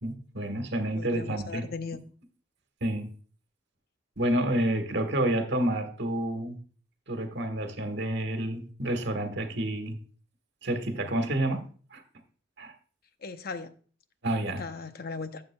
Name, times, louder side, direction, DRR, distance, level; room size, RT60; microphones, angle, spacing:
voice 1, 0.0-1.7 2.8-3.1 4.2-6.6 7.1-10.0 10.6-11.6 11.9-12.0 12.6-12.7 14.2-14.6, right 1 dB, 60° right, 6 dB, 1.4 m, -29 dB
voice 2, 0.9-2.0 13.2-13.7 14.6-15.4, left 4 dB, 50° left, 10 dB, 0.7 m, -37 dB
11.5 x 7.7 x 2.2 m, 0.41 s
head